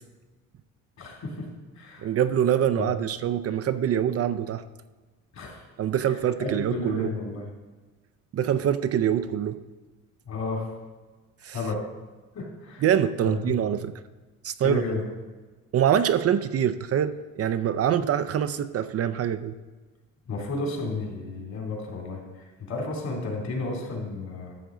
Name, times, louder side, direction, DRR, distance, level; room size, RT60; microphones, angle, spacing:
voice 1, 1.0-1.5 1.7-2.1 2.8-3.0 5.3-5.6 6.0-7.5 10.3-10.7 11.5-11.8 12.3-12.8 13.2-13.5 14.6-15.0 20.3-24.6, left 3 dB, 55° left, 0 dB, 2.9 m, -32 dB
voice 2, 2.0-4.6 5.8-7.1 8.3-9.6 11.4-11.6 12.8-13.9 14.4-14.8 15.7-19.6, right 9 dB, 45° right, 11 dB, 0.5 m, -24 dB
13.0 x 6.8 x 3.8 m, 1.3 s
cardioid pair, 95°, 32 cm